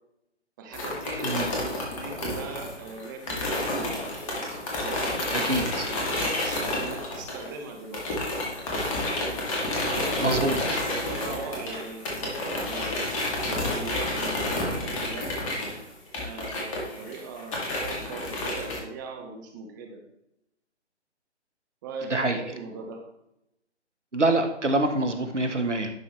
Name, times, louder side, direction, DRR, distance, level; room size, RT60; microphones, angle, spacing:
voice 1, 0.6-4.1 4.8-8.2 9.8-15.5 16.2-20.0 21.8-23.1, right 4 dB, 15° right, 3 dB, 0.8 m, -40 dB
sound 1, 0.7-7.6 7.9-18.8, left 1 dB, 30° left, 2.2 m, -30 dB
voice 2, 5.3-5.9 10.2-10.8 22.0-22.4 24.1-25.9, right 2 dB, 85° right, 6 dB, 1.3 m, -26 dB
11.0 x 5.8 x 3.2 m, 0.85 s
figure-of-eight pair, 135°, 35 cm